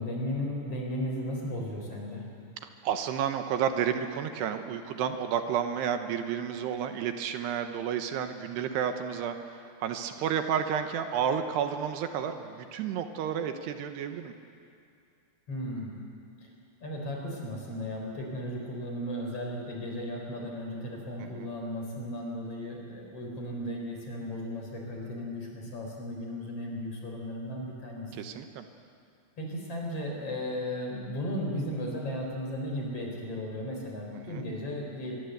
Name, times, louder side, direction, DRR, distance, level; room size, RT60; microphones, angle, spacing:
voice 1, 0.0-2.3 15.5-16.0 16.8-28.1 29.4-35.2, left 1 dB, 35° left, 0 dB, 5.0 m, -35 dB
voice 2, 2.8-14.3 21.2-21.5 28.1-28.7 34.2-34.4, right 8 dB, 80° right, 7 dB, 3.1 m, -31 dB
25.0 x 23.0 x 8.1 m, 2.4 s
omnidirectional pair, 4.9 m